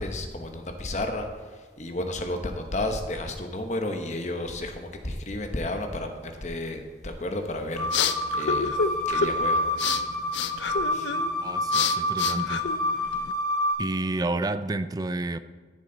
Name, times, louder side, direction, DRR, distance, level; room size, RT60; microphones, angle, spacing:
voice 1, 0.0-9.6 10.9-11.1, left 1 dB, 40° left, 5 dB, 1.0 m, -32 dB
sound 1, 7.4-13.3, left 6 dB, 85° left, 0.5 m, -30 dB
sound 2, 7.7-13.7, left 1 dB, 10° left, 3.0 m, -27 dB
voice 2, 11.4-12.6 13.8-15.4, right 2 dB, 20° right, 12 dB, 0.4 m, -30 dB
14.0 x 7.2 x 3.9 m, 1.4 s
head